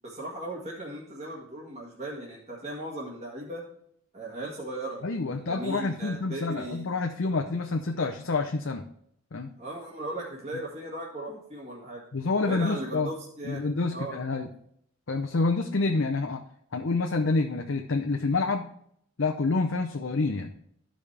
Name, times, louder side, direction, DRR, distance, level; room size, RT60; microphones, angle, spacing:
voice 1, 0.0-3.6 4.1-5.1 5.3-7.0 9.6-12.0 12.5-14.2, right 1 dB, 30° right, -5 dB, 1.8 m, -37 dB
voice 2, 5.0-8.8 9.3-9.5 12.1-13.1 13.4-14.5 15.1-16.4 16.7-18.6 19.2-20.5, left 3 dB, 60° left, 4 dB, 0.6 m, -28 dB
13.5 x 5.1 x 3.3 m, 0.69 s
head